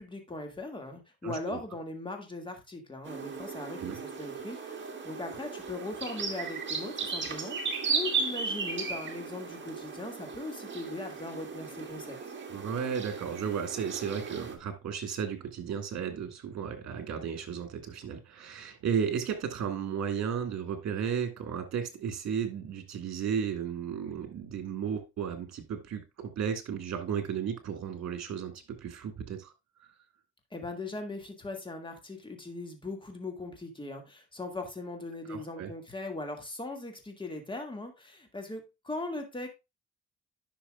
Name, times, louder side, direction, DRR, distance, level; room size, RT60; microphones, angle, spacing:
voice 1, 0.0-12.2 30.5-39.5, left 2 dB, 15° left, 2.2 m, -39 dB
voice 2, 1.2-1.6 3.8-4.0 12.5-29.5 35.3-35.7, right 7 dB, 60° right, 2.3 m, -34 dB
sound 1, 3.0-14.5, right 5 dB, 40° right, 1.9 m, -36 dB
10.0 x 6.2 x 2.4 m
cardioid pair, 90°, 30 cm